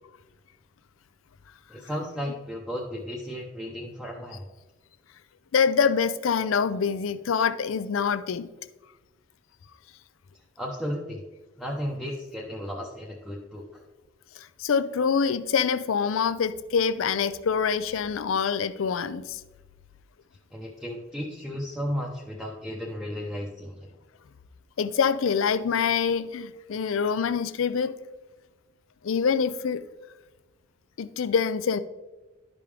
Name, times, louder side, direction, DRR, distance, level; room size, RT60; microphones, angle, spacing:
voice 1, 1.7-4.4 10.6-11.2 11.6-13.8 20.5-23.8, equal, ahead, -4 dB, 0.6 m, -34 dB
voice 2, 5.5-8.5 14.4-19.4 24.8-27.9 29.0-29.9 31.0-31.8, left 6 dB, 85° left, 14 dB, 0.4 m, -25 dB
11.5 x 5.2 x 3.3 m, 1.1 s
head